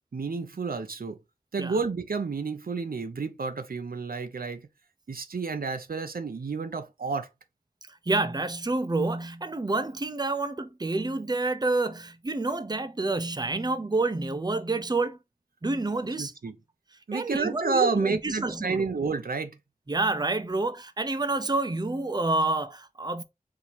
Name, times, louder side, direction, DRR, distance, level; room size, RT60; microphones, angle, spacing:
voice 1, 0.1-1.2 1.5-4.7 5.1-7.3 16.2-16.6 17.1-19.6, right 4 dB, 80° right, 0.6 m, -30 dB
voice 2, 7.9-15.2 15.6-16.3 17.1-18.9 19.9-23.2, right 2 dB, 30° right, 0.6 m, -28 dB
4.5 x 2.7 x 3.9 m
wide cardioid pair, 45°, 15 cm